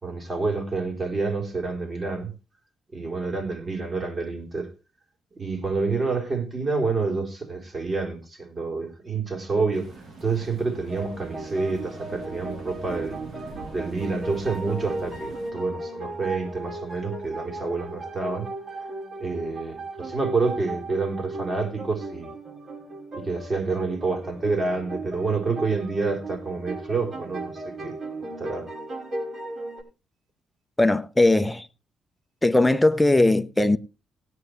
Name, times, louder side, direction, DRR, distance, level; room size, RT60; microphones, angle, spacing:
voice 1, 0.0-2.3 2.9-4.7 5.3-13.2 13.7-18.5 19.2-22.3 23.1-28.0 28.4-28.7, right 4 dB, 35° right, 4.1 m, -28 dB
sound 1, 9.7-15.5, right 3 dB, 70° right, 6.8 m, -43 dB
sound 2, 10.9-29.8, right 2 dB, 50° right, 5.8 m, -36 dB
voice 2, 30.8-31.6 32.4-33.8, left 2 dB, 10° left, 0.9 m, -19 dB
17.5 x 9.6 x 3.3 m
cardioid pair, 80°, 0 cm